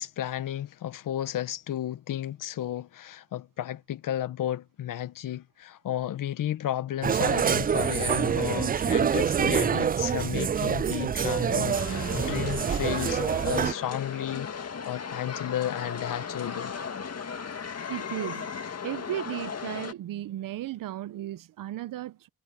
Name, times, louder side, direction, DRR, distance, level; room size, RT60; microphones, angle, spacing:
voice 1, 0.0-16.8, left 12 dB, 75° left, 1.3 m, -33 dB
sound 1, 7.0-13.7, right 7 dB, 30° right, 0.4 m, -26 dB
sound 2, 11.7-19.9, left 6 dB, 50° left, 2.1 m, -36 dB
voice 2, 17.9-18.5 18.8-22.3, right 14 dB, 80° right, 1.0 m, -35 dB
supercardioid pair, 45°, 33 cm